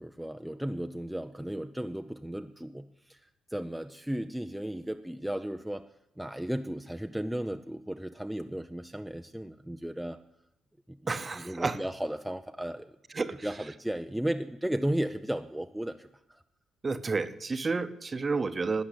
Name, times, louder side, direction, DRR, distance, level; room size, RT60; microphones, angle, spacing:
voice 1, 0.0-3.2 3.5-5.8 6.2-10.2 10.9-11.0 11.3-13.0 13.4-16.4, right 1 dB, 5° right, 6 dB, 0.5 m, -35 dB
voice 2, 11.1-11.8 13.1-13.5 16.8-18.8, right 4 dB, 30° right, 11 dB, 0.9 m, -31 dB
12.0 x 9.4 x 8.4 m, 0.84 s
cardioid pair, 90°, 0 cm